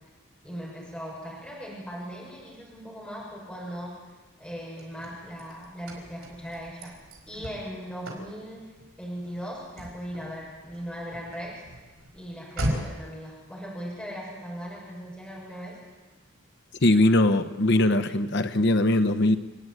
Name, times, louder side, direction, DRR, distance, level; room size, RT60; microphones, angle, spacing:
voice 1, 0.4-3.9 4.4-6.9 7.3-8.7 9.0-11.6 12.1-15.8, equal, 5° left, -5 dB, 6.8 m, -38 dB
Car / Slam, 4.4-13.1, right 1 dB, 75° right, 5.2 m, -38 dB
voice 2, 16.8-19.4, left 1 dB, 55° left, 11 dB, 1.0 m, -21 dB
29.0 x 9.9 x 9.3 m, 1.2 s
head